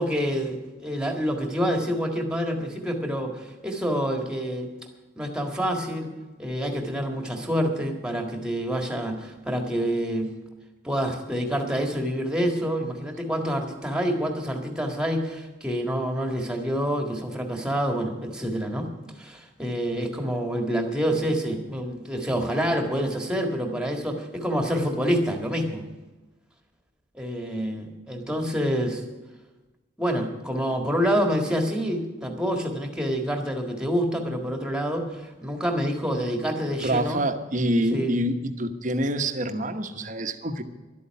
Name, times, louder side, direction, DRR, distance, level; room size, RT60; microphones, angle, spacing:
voice 1, 0.0-4.7 5.1-6.1 6.4-10.3 10.8-18.9 19.2-25.8 27.1-29.0 30.0-37.2 37.9-38.1, equal, 5° right, 4 dB, 1.8 m, -27 dB
voice 2, 36.8-40.6, right 1 dB, 40° right, 8 dB, 1.1 m, -26 dB
12.0 x 8.3 x 9.7 m, 1.2 s
head